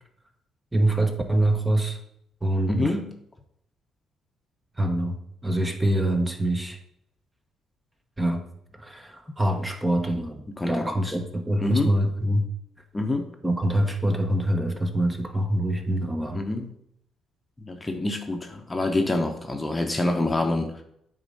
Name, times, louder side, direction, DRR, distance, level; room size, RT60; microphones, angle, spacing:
voice 1, 0.7-2.0 2.4-3.0 4.8-6.8 8.2-8.4 8.7-12.5 13.4-16.4, right 1 dB, 15° right, 5 dB, 1.1 m, -25 dB
voice 2, 2.7-3.1 10.6-11.1 11.6-11.9 12.9-13.3 16.3-16.7 17.6-20.8, left 2 dB, 20° left, 4 dB, 1.0 m, -26 dB
8.8 x 3.7 x 5.5 m, 0.73 s
cardioid pair, 90°, 0 cm